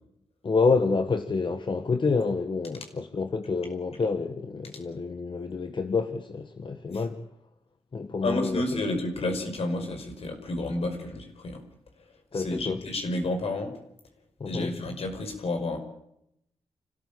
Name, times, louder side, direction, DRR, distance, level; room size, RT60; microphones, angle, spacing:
voice 1, 0.4-7.2 7.9-8.7 12.3-12.8 14.4-14.8, left 4 dB, 50° left, 1.6 m, -28 dB
voice 2, 8.2-11.6 12.3-13.7 14.5-15.8, left 2 dB, 75° left, 5.5 m, -30 dB
29.0 x 14.0 x 8.7 m
cardioid pair, 65°, 10 cm